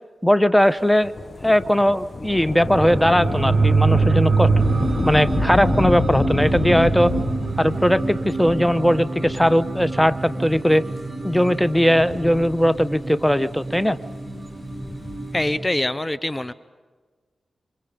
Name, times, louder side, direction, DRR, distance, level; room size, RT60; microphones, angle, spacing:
voice 1, 0.2-1.1 1.4-4.5 5.0-7.1 7.6-10.9 11.2-14.0, equal, 5° left, 15 dB, 1.0 m, -19 dB
Thunder / Rain, 1.0-10.0 10.7-10.8 11.8-13.1 14.6-15.3, left 3 dB, 50° left, 1.2 m, -28 dB
sound 1, 2.5-11.6 12.0-12.1, right 5 dB, 65° right, 1.0 m, -24 dB
sound 2, 4.6-15.7, right 1 dB, 20° right, 2.7 m, -30 dB
voice 2, 15.3-16.5, left 1 dB, 20° left, 14 dB, 0.9 m, -24 dB
27.5 x 26.0 x 5.3 m, 1.4 s
cardioid pair, 40°, 0 cm